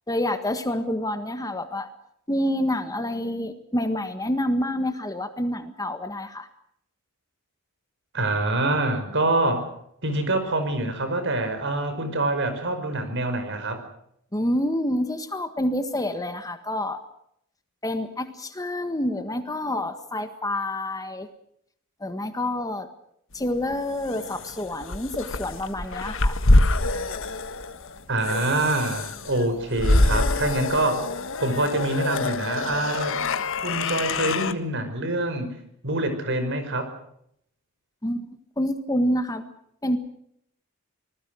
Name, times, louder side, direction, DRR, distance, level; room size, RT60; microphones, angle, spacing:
voice 1, 0.1-1.9 2.3-6.5 14.3-17.0 17.8-21.3 22.0-22.9 23.3-26.4 38.0-38.3 38.6-39.5 39.8-40.0, left 1 dB, 15° left, 8 dB, 1.6 m, -27 dB
voice 2, 8.1-9.7 10.0-13.8 28.1-31.1 31.4-33.2 33.6-35.5 35.8-36.9, right 2 dB, 60° right, 8 dB, 5.6 m, -25 dB
sound 1, 23.5-34.5, left 2 dB, 65° left, 1.5 m, -25 dB
26.5 x 20.0 x 6.4 m, 0.73 s
head